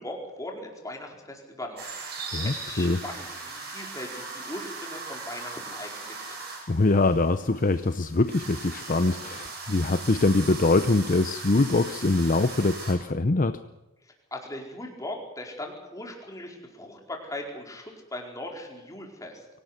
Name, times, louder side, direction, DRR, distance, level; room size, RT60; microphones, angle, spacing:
voice 1, 0.0-1.9 2.2-6.3 14.0-19.5, left 1 dB, 15° left, 0 dB, 4.5 m, -39 dB
sound 1, 1.8-12.9, right 4 dB, 45° right, 7.1 m, -39 dB
voice 2, 2.3-3.0 6.7-13.6, left 2 dB, 40° left, 11 dB, 0.7 m, -23 dB
24.0 x 18.0 x 8.1 m, 1.0 s
head